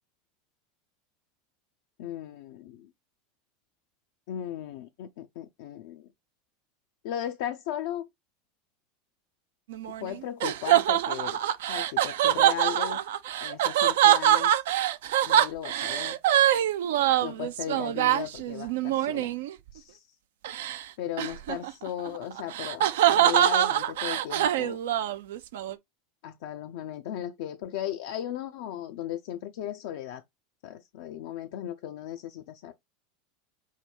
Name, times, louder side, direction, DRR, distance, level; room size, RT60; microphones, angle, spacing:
voice 1, 2.0-2.9 4.3-6.0 7.0-8.1 10.0-11.4 11.7-13.0 13.4-14.5 15.2-16.2 17.2-19.3 19.7-20.0 21.0-24.8 26.2-30.2 30.6-32.7, left 11 dB, 60° left, 0.4 m, -36 dB
sound 1, 9.7-19.5 20.4-20.8 21.2-25.7, right 12 dB, 65° right, 0.4 m, -24 dB
5.5 x 2.1 x 3.2 m
figure-of-eight pair, 80°, 0 cm